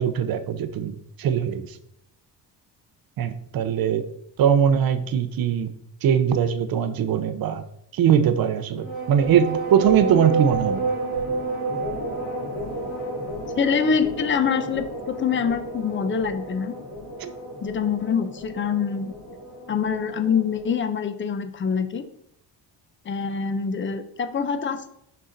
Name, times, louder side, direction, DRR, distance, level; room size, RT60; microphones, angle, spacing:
voice 1, 0.0-1.8 3.2-4.1 4.4-5.7 6.0-7.6 7.9-10.8 17.2-17.3, right 8 dB, 55° right, 11 dB, 0.7 m, -21 dB
sound 1, 8.8-20.7, right 3 dB, 75° left, 2.6 m, -30 dB
voice 2, 13.5-16.8 17.6-19.1 19.7-22.0 23.1-24.9, left 6 dB, 30° left, 10 dB, 0.5 m, -25 dB
6.4 x 5.7 x 3.9 m, 0.75 s
cardioid pair, 155°, 43 cm